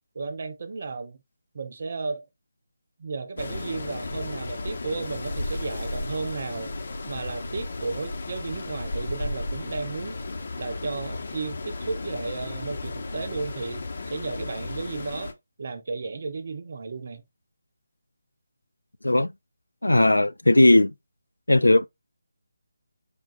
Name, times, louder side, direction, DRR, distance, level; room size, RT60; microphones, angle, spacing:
voice 1, 0.1-1.2 1.5-2.2 3.0-6.7 7.1-10.2 10.6-15.3 15.6-17.2, right 4 dB, 50° right, 0.6 m, -33 dB
sound 1, 3.4-15.3, left 2 dB, 55° left, 0.8 m, -34 dB
voice 2, 19.8-20.9 21.5-21.9, left 1 dB, 85° left, 0.4 m, -17 dB
5.1 x 2.4 x 2.6 m
figure-of-eight pair, 155°, 0 cm